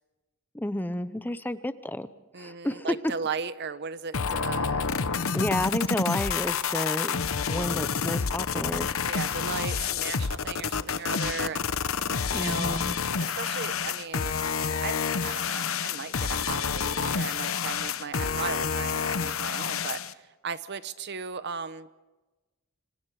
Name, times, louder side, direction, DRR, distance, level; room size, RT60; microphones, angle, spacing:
voice 1, 0.5-2.1 2.4-3.0 5.3-7.2 7.5-8.9 12.3-13.0, left 1 dB, 10° left, 13 dB, 0.7 m, -30 dB
voice 2, 2.3-4.9 9.1-11.7 12.3-12.8 13.2-14.4 14.8-22.0, right 5 dB, 55° right, 14 dB, 0.9 m, -36 dB
sound 1, 4.1-20.1, left 6 dB, 70° left, 0.9 m, -29 dB
26.5 x 26.5 x 4.8 m, 1.2 s
head